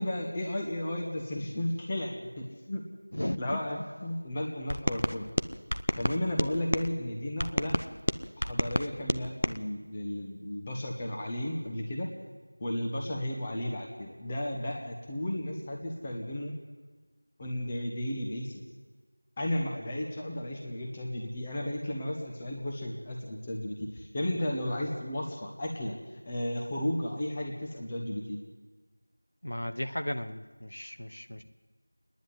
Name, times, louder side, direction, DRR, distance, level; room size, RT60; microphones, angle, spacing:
voice 1, 0.0-2.9 3.4-5.3 6.0-7.8 8.4-12.1 12.6-16.5 17.4-18.6 19.4-26.0 26.3-28.4, left 1 dB, 10° left, 0 dB, 1.1 m, -34 dB
voice 2, 3.1-3.6 29.4-31.4, left 1 dB, 50° left, 7 dB, 1.0 m, -35 dB
sound 1, 4.7-6.9 7.4-9.6, equal, 80° left, 1.0 m, -30 dB
26.5 x 10.5 x 9.5 m, 1.4 s
figure-of-eight pair, 175°, 0 cm